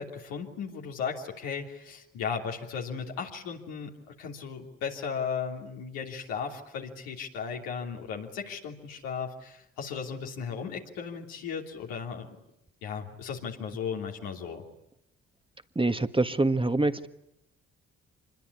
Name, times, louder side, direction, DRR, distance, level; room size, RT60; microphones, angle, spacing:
voice 1, 0.0-12.4 12.8-14.6, left 6 dB, 85° left, 0 dB, 3.2 m, -36 dB
voice 2, 15.7-17.1, right 2 dB, 15° right, 9 dB, 1.5 m, -25 dB
26.0 x 21.5 x 9.8 m, 0.85 s
hypercardioid pair, 45°, 33 cm